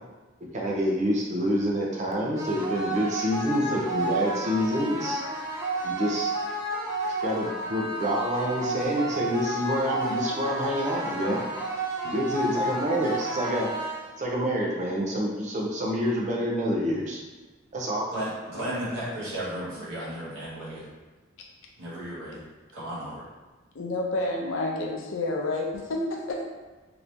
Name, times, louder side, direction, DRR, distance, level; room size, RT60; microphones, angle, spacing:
voice 1, 0.5-5.2 5.8-6.3 7.2-11.4 12.0-13.7 14.2-17.2 17.7-18.0, equal, 35° right, -3 dB, 0.5 m, -27 dB
sound 1, 2.3-14.3, right 2 dB, 15° right, 0.8 m, -31 dB
voice 2, 18.1-20.9 21.8-22.4 22.7-23.2, right 1 dB, 75° right, -8 dB, 1.3 m, -34 dB
voice 3, 23.7-26.5, left 2 dB, 80° left, 0 dB, 0.6 m, -29 dB
2.9 x 2.5 x 3.3 m, 1.2 s
head